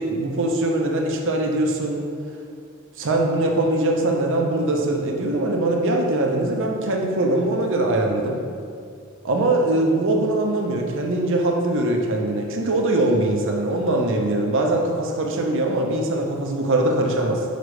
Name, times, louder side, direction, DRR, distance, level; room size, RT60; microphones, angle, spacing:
voice 1, 0.0-2.0 3.0-8.4 9.2-17.4, right 2 dB, 60° right, 1 dB, 0.8 m, -22 dB
6.5 x 5.0 x 3.3 m, 2.3 s
head